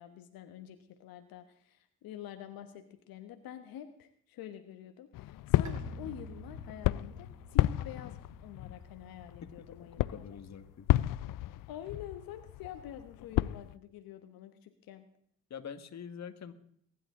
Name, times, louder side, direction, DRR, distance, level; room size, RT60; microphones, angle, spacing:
voice 1, 0.0-10.2 11.7-15.1, left 10 dB, 85° left, 8 dB, 1.2 m, -47 dB
sound 1, 5.1-13.7, left 15 dB, 65° left, 0.5 m, -33 dB
Bowed string instrument, 5.6-11.2, right 4 dB, 55° right, 2.0 m, -51 dB
voice 2, 9.4-10.9 15.5-16.5, left 7 dB, 50° left, 8 dB, 1.7 m, -45 dB
22.5 x 11.0 x 3.7 m, 0.65 s
cardioid pair, 80°, 35 cm